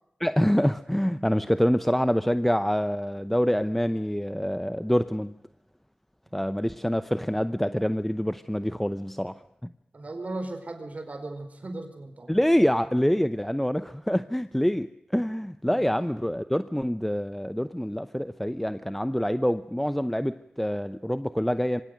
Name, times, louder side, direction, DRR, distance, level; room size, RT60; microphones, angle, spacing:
voice 1, 0.2-5.3 6.3-9.4 9.6-9.7 12.3-21.8, equal, 5° left, 12 dB, 0.8 m, -26 dB
voice 2, 9.9-12.4 15.7-16.0, right 2 dB, 50° right, 7 dB, 4.3 m, -37 dB
25.0 x 17.5 x 6.6 m, 0.81 s
cardioid pair, 50°, 3 cm